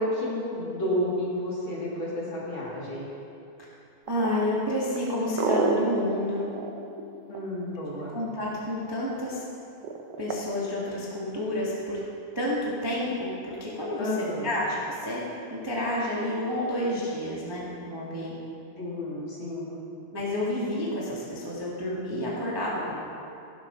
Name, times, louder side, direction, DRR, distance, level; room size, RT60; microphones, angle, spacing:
voice 1, 0.0-3.1 7.3-8.2 14.0-14.5 18.8-19.9, left 1 dB, 40° left, -5 dB, 2.9 m, -31 dB
voice 2, 4.1-6.5 8.1-9.4 10.2-12.0 12.3-15.2 15.5-18.3 20.1-23.0, left 1 dB, 10° right, -6 dB, 1.4 m, -30 dB
sound 1, 4.1-7.8 9.8-10.4, right 5 dB, 70° right, 1.6 m, -28 dB
15.5 x 12.5 x 4.0 m, 2.6 s
omnidirectional pair, 3.5 m